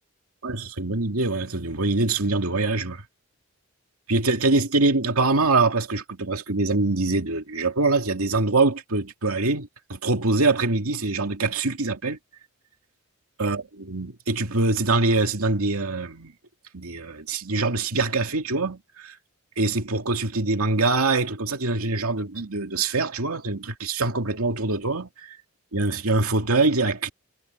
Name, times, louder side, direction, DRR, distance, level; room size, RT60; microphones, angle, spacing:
voice 1, 0.4-3.0 4.1-12.2 13.4-16.3 16.7-19.2 19.6-25.4 25.7-27.1, right 3 dB, 90° right, 2.4 m, -24 dB
head